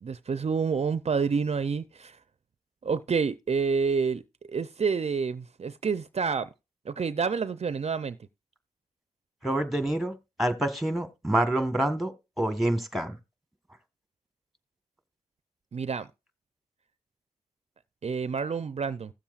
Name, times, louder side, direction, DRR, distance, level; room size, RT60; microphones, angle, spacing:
voice 1, 0.0-2.2 2.8-4.2 4.5-6.5 6.9-8.2 15.7-16.1 18.0-19.1, right 5 dB, 55° right, 0.4 m, -28 dB
voice 2, 9.4-13.2, right 1 dB, ahead, 1.3 m, -27 dB
16.0 x 7.2 x 2.4 m
wide cardioid pair, 65°, 13 cm